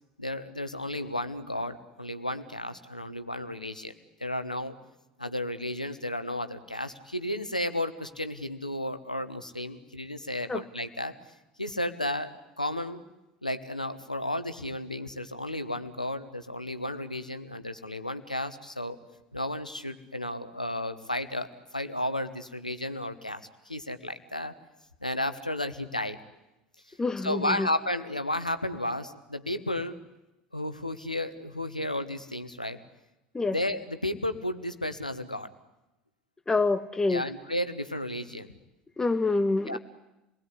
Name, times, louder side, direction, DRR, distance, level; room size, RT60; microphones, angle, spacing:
voice 1, 0.2-3.9 4.2-4.8 5.2-11.1 11.6-13.0 13.4-19.0 19.3-24.5 25.0-26.2 26.9-27.0 27.2-30.0 30.5-32.8 33.5-35.5 37.1-38.5 39.7-39.8, left 1 dB, 90° left, 11 dB, 1.4 m, -33 dB
voice 2, 27.0-27.7 33.3-33.6 36.5-37.2 39.0-39.8, left 3 dB, 15° left, 11 dB, 1.6 m, -26 dB
28.5 x 20.5 x 10.0 m, 0.95 s
figure-of-eight pair, 70°, 4 cm